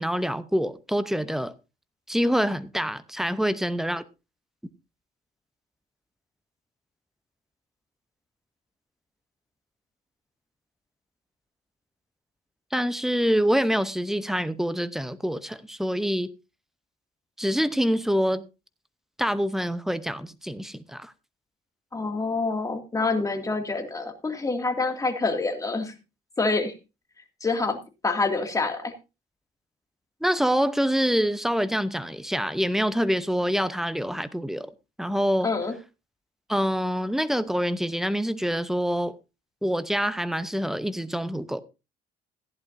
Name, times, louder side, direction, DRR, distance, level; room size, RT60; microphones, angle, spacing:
voice 1, 0.0-1.5 2.1-4.0 12.7-16.3 17.4-18.5 19.2-21.1 30.2-34.7 35.0-35.5 36.5-39.1 39.6-41.6, equal, ahead, 0.7 m, -26 dB
voice 2, 21.9-26.0 26.4-26.7 27.4-27.8 28.0-28.9 35.4-35.7, left 3 dB, 20° left, 2.3 m, -26 dB
15.0 x 10.5 x 2.6 m
cardioid pair, 110°, 17 cm